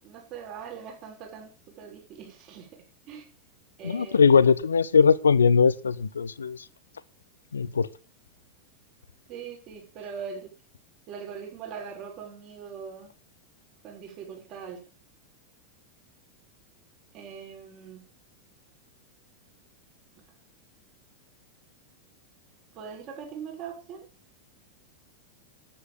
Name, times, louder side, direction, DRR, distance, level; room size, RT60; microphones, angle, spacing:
voice 1, 0.0-2.7 3.0-3.3 3.8-4.4 9.3-10.5 11.1-13.1 13.8-14.8 17.1-18.0 22.7-24.1, right 6 dB, 40° right, 5.6 m, -41 dB
voice 2, 3.8-6.6 7.5-7.9, left 6 dB, 70° left, 0.6 m, -20 dB
10.0 x 9.4 x 6.8 m
figure-of-eight pair, 90°, 0 cm